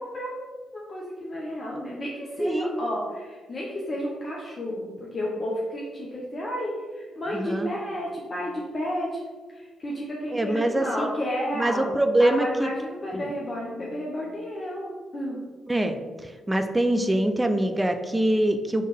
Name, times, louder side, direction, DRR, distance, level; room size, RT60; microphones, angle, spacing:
voice 1, 0.0-9.2 9.5-15.4, equal, 40° left, -4 dB, 0.8 m, -32 dB
voice 2, 2.4-2.7 7.3-7.7 10.3-11.1 11.6-12.7 13.1-13.3 15.7-16.0 16.5-18.9, right 1 dB, 15° right, 6 dB, 0.5 m, -24 dB
4.5 x 3.1 x 3.4 m, 1.4 s
hypercardioid pair, 45°, 0 cm